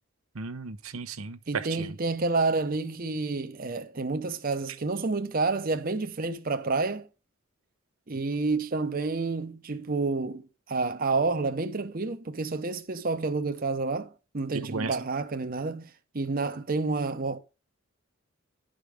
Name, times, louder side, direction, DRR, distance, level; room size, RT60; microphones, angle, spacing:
voice 1, 0.3-1.9 8.1-8.4 14.7-15.0, right 4 dB, 90° right, 0.9 m, -35 dB
voice 2, 1.5-7.1 8.1-17.4, right 3 dB, 45° right, 0.7 m, -29 dB
11.5 x 5.1 x 5.0 m
head